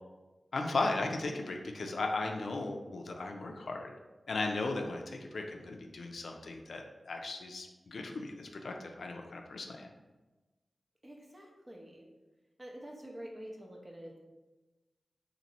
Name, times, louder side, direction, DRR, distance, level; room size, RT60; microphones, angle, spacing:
voice 1, 0.5-3.9 4.3-9.9, left 3 dB, 80° left, 3 dB, 0.4 m, -36 dB
voice 2, 11.0-12.1 12.6-14.2, equal, 30° right, 0 dB, 0.7 m, -47 dB
2.8 x 2.6 x 4.0 m, 1.2 s
cardioid pair, 50°, 0 cm